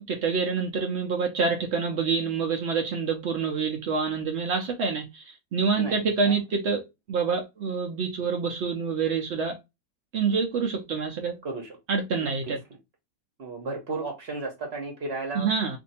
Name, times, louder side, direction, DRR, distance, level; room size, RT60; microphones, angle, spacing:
voice 1, 0.0-9.6 10.1-11.3 11.9-12.6 15.3-15.8, right 5 dB, 85° right, 0.5 m, -27 dB
voice 2, 5.7-6.3 11.4-11.8 12.2-12.3 13.4-15.5, right 3 dB, 45° right, 0.9 m, -34 dB
2.6 x 2.6 x 4.0 m
omnidirectional pair, 1.9 m